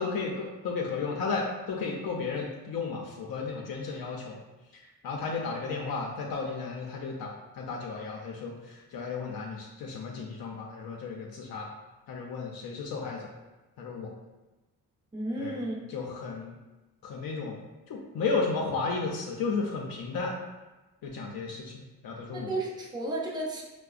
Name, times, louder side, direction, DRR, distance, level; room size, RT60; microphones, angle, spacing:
voice 1, 0.0-4.4 5.0-11.7 12.1-13.3 13.8-14.1 15.4-15.6 15.9-16.6 17.0-17.6 17.9-20.3 21.0-22.5, left 4 dB, 85° left, -1 dB, 0.5 m, -33 dB
voice 2, 15.1-15.8 22.3-23.6, right 2 dB, 10° right, -3 dB, 0.5 m, -33 dB
4.5 x 2.1 x 2.4 m, 1.1 s
wide cardioid pair, 115°, 35 cm